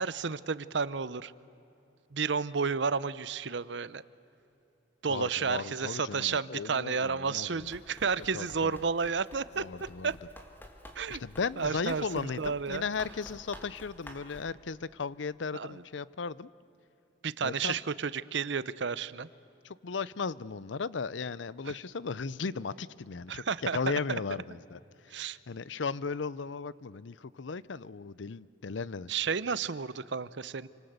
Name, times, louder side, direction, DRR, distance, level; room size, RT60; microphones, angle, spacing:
voice 1, 0.0-1.3 2.1-4.0 5.0-9.7 10.0-10.1 11.0-11.2 11.6-12.8 15.5-15.8 17.2-19.3 23.3-23.9 25.1-25.4 29.1-30.7, right 5 dB, 70° right, 17 dB, 0.7 m, -31 dB
voice 2, 5.1-7.7 8.3-8.8 9.6-10.1 11.1-16.5 17.4-17.8 19.6-23.4 23.7-24.8 25.5-29.1, left 5 dB, 80° left, 19 dB, 0.6 m, -36 dB
Run, 7.6-14.5, equal, 10° left, 2.0 m, -51 dB
28.5 x 26.0 x 8.1 m, 2.9 s
head